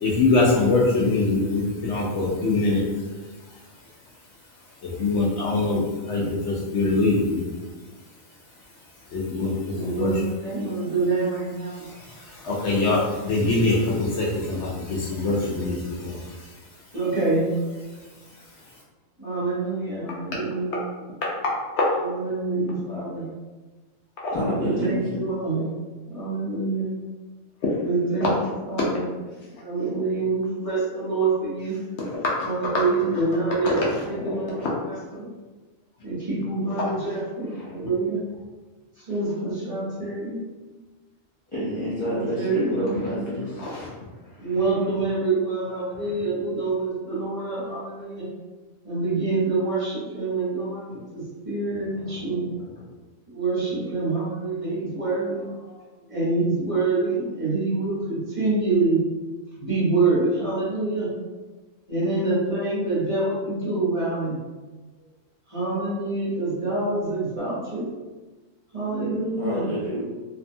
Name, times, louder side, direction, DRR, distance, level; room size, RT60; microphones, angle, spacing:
voice 1, 0.0-2.8 4.8-7.4 9.1-10.3 11.7-16.5 24.2-24.3 28.2-28.4 28.8-28.9 32.0-32.5 33.1-33.2 33.6-34.7 36.8-36.9 42.9-43.1 43.5-43.9 51.9-52.2, left 3 dB, 65° left, -4 dB, 0.8 m, -24 dB
voice 2, 9.7-11.8 16.9-17.5 19.2-20.7 22.0-23.3 24.6-25.7 26.0-26.9 27.8-28.3 28.7-29.1 29.6-31.8 32.4-34.6 34.8-35.3 36.0-38.2 39.0-40.4 42.1-43.3 44.4-48.3 48.8-52.5 53.3-55.5 56.1-59.0 59.6-61.2 61.9-64.4 65.5-67.9 68.7-69.7, right 3 dB, 30° right, -10 dB, 0.9 m, -26 dB
voice 3, 24.3-25.2 41.5-43.5 69.4-70.0, equal, 45° left, -11 dB, 0.4 m, -27 dB
2.6 x 2.2 x 2.6 m, 1.2 s
omnidirectional pair, 1.4 m